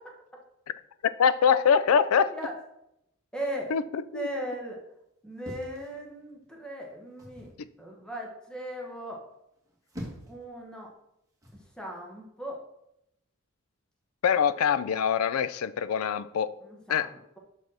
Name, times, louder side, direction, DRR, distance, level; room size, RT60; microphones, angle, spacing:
voice 1, 1.0-2.3 3.7-4.3 14.2-16.5 16.9-17.1, left 7 dB, 80° left, 15 dB, 0.4 m, -24 dB
voice 2, 3.3-3.7 4.1-4.8 5.2-7.5 7.8-9.2 10.3-10.9 11.5-12.6 16.6-17.4, right 1 dB, 5° left, 0 dB, 1.1 m, -38 dB
sound 1, 5.4-6.5 7.2-7.6 9.6-10.5 11.4-11.7, equal, 15° right, 1.5 m, -43 dB
5.7 x 5.1 x 6.1 m, 0.82 s
head